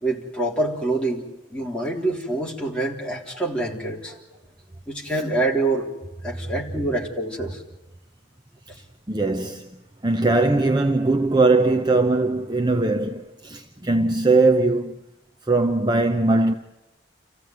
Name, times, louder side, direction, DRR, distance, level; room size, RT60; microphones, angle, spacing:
voice 1, 0.0-4.2 4.9-5.9 6.2-7.6, right 2 dB, 5° left, 3.6 m, -26 dB
voice 2, 9.1-9.7 10.0-15.0 15.5-16.5, right 2 dB, 20° right, 0.8 m, -20 dB
28.5 x 15.0 x 9.3 m
head